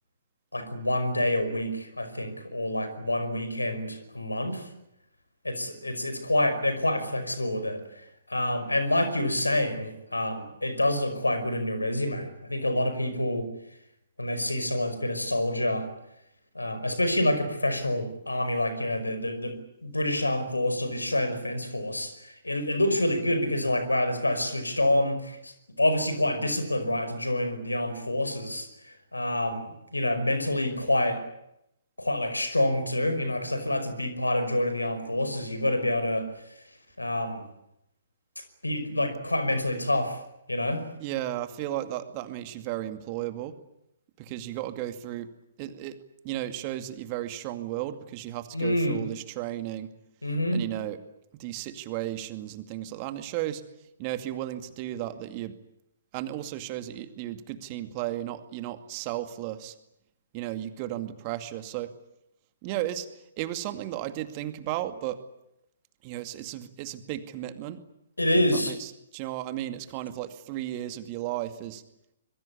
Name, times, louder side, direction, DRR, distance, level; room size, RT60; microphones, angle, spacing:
voice 1, 0.5-4.7 5.4-7.8 8.3-13.5 14.2-15.9 16.5-28.7 29.1-31.2 32.0-36.3 37.0-37.4 38.6-40.2 40.5-40.8 48.5-49.0 50.2-50.6 68.2-68.7, left 1 dB, 85° left, 11 dB, 5.4 m, -27 dB
voice 2, 41.0-43.5 44.2-45.3 45.6-46.0 46.2-49.9 50.5-51.0 51.4-53.6 54.0-55.5 56.1-59.7 60.3-61.9 62.6-63.1 63.4-65.2 66.0-67.8 68.6-68.9 69.1-71.8, right 13 dB, 35° right, 9 dB, 2.3 m, -34 dB
26.0 x 22.5 x 8.5 m, 0.81 s
figure-of-eight pair, 125°, 0 cm